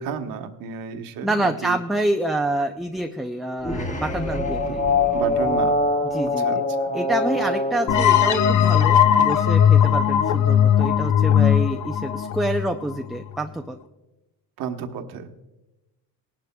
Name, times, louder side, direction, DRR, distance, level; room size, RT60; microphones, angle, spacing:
voice 1, 0.0-1.8 5.1-5.8 6.4-6.9 14.6-15.3, right 6 dB, 70° right, 6 dB, 1.1 m, -32 dB
voice 2, 1.2-4.8 6.0-6.6 6.9-13.8, right 1 dB, ahead, 4 dB, 0.3 m, -27 dB
sound 1, 3.6-9.2, left 2 dB, 20° left, 1.2 m, -24 dB
sound 2, 7.9-13.4, left 9 dB, 55° left, 0.7 m, -18 dB
19.0 x 11.5 x 2.2 m, 1.0 s
cardioid pair, 135°, 36 cm